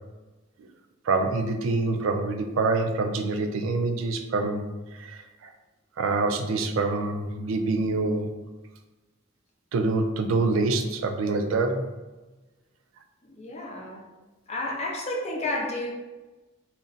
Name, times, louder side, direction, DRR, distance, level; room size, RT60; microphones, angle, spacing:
voice 1, 1.1-4.6 5.0-5.2 6.0-8.3 9.7-11.8, right 3 dB, 85° right, 6 dB, 0.3 m, -25 dB
voice 2, 13.2-14.0 14.5-15.9, left 1 dB, 35° left, -2 dB, 0.5 m, -31 dB
2.5 x 2.1 x 3.8 m, 1.1 s
head